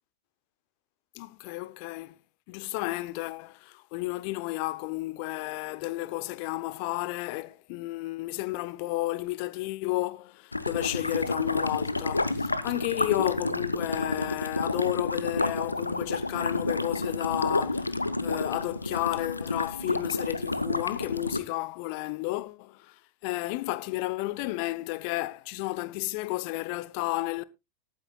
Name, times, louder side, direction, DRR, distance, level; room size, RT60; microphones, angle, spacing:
voice 1, 1.1-2.2 2.5-27.4, left 19 dB, 45° left, 0.7 m, -32 dB
sound 1, 10.5-21.4, left 2 dB, 80° left, 0.7 m, -30 dB
18.5 x 9.2 x 2.2 m
figure-of-eight pair, 90°, 0 cm